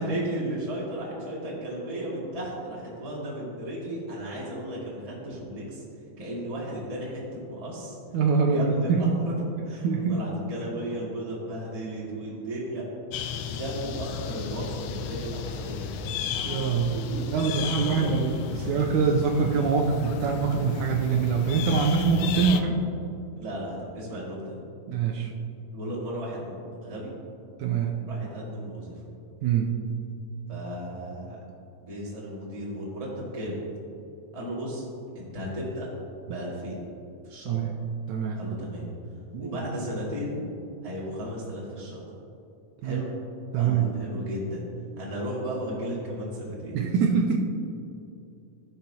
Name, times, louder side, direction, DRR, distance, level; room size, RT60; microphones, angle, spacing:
voice 1, 0.0-5.8 6.2-8.0 8.4-12.8 13.5-16.1 16.9-17.2 17.6-18.1 18.5-18.7 23.4-24.6 25.7-27.1 28.0-28.9 30.5-31.4 31.8-33.1 33.3-33.6 34.3-34.8 35.1-35.9 36.3-36.8 37.2-37.6 38.3-38.9 39.4-40.4 40.8-42.0 42.8-43.1 43.5-44.6 45.0-46.8, equal, 15° right, -6 dB, 1.4 m, -35 dB
voice 2, 8.1-9.1 9.8-10.2 16.4-17.0 17.3-18.4 18.7-22.8 24.9-25.3 27.6-28.0 29.4-29.7 37.5-37.8 38.1-38.4 39.3-39.6 42.8-43.0 43.5-43.9 46.7-47.4, right 5 dB, 80° right, 1 dB, 2.0 m, -24 dB
sound 1, 13.1-22.6, left 7 dB, 90° left, 1.6 m, -34 dB
15.0 x 6.7 x 2.8 m, 2.7 s
omnidirectional pair, 3.7 m